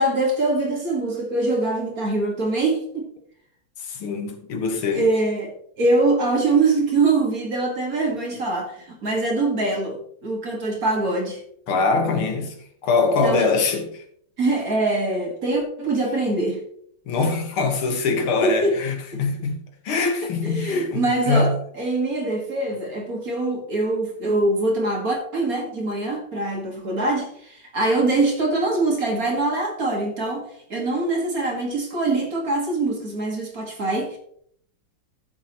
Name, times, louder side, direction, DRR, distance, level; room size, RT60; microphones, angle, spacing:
voice 1, 0.0-3.1 4.9-11.4 13.2-13.5 14.4-16.6 18.4-18.8 20.4-30.4 30.7-34.2, right 2 dB, 45° right, 2.3 m, -23 dB
voice 2, 3.8-5.1 11.7-12.6 12.8-14.0 17.1-19.6 19.8-21.6, left 4 dB, 90° left, 2.4 m, -23 dB
14.0 x 7.1 x 3.1 m
omnidirectional pair, 2.3 m